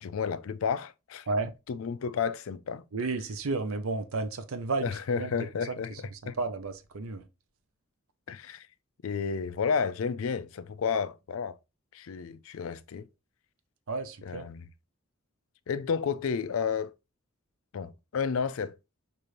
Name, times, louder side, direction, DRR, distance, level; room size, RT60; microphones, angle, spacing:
voice 1, 0.0-1.2 1.7-2.8 4.8-6.3 8.3-8.7 9.0-11.6 11.9-13.0 14.2-14.7 15.7-16.9 17.7-18.8, left 6 dB, 70° left, 0.4 m, -31 dB
voice 2, 2.9-5.3 5.7-7.2 13.9-14.5, right 3 dB, 70° right, 0.6 m, -33 dB
6.6 x 2.6 x 3.0 m
head